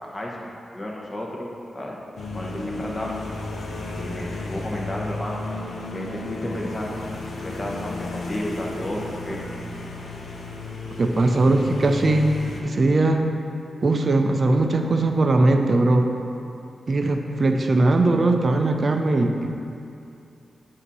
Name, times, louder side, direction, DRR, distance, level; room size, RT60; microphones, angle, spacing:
voice 1, 0.0-1.5 1.7-2.0 2.3-3.2 3.9-5.4 5.9-6.9 7.4-9.4, left 1 dB, 25° left, -2 dB, 1.1 m, -32 dB
sound 1, 2.2-12.6, left 2 dB, 85° left, 0.7 m, -33 dB
voice 2, 11.0-12.4 12.6-13.2 13.8-16.1 16.9-19.5, right 2 dB, 45° right, 4 dB, 0.5 m, -20 dB
8.1 x 2.8 x 6.2 m, 2.6 s
wide cardioid pair, 90°, 0 cm